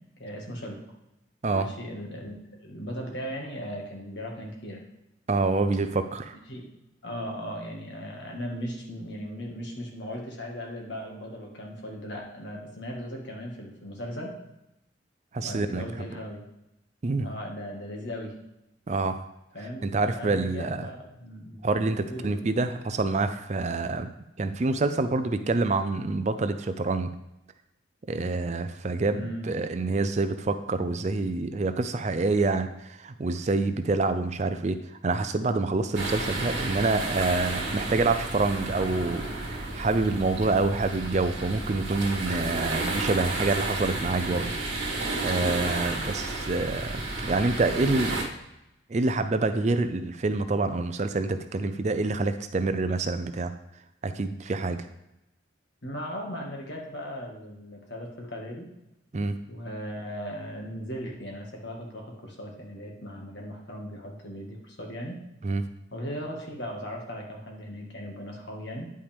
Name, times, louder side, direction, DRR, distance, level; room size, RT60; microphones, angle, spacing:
voice 1, 0.2-0.8 1.5-2.3 2.6-4.8 6.5-6.6 7.0-14.3 15.4-16.4 17.2-18.3 19.5-21.6 22.1-22.5 29.1-29.5 55.8-58.7 59.5-65.2 65.9-68.9, equal, 65° left, 0 dB, 1.7 m, -37 dB
voice 2, 5.3-6.4 15.3-16.1 17.0-17.3 18.9-19.2 19.8-20.9 21.6-24.1 24.4-27.1 28.1-44.5 44.9-48.2 48.9-53.5 54.0-54.9 59.1-59.4 65.4-65.7, right 3 dB, 35° right, 9 dB, 0.4 m, -27 dB
sound 1, 35.9-48.2, right 2 dB, 65° right, 1.9 m, -32 dB
9.6 x 5.5 x 3.5 m, 0.88 s
head